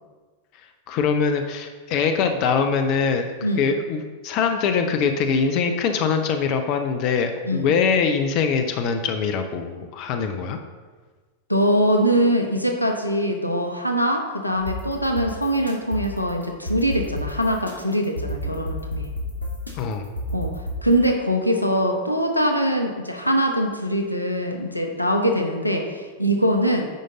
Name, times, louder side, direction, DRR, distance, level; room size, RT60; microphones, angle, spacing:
voice 1, 0.9-3.3 3.6-10.6 19.8-20.1, left 5 dB, 40° left, 6 dB, 0.6 m, -23 dB
voice 2, 11.5-19.1 20.3-20.5 20.8-26.9, equal, 85° left, 3 dB, 0.9 m, -22 dB
sound 1, 14.6-21.1, left 1 dB, 90° right, 1.4 m, -32 dB
9.3 x 5.2 x 3.8 m, 1.4 s
figure-of-eight pair, 90°, 0 cm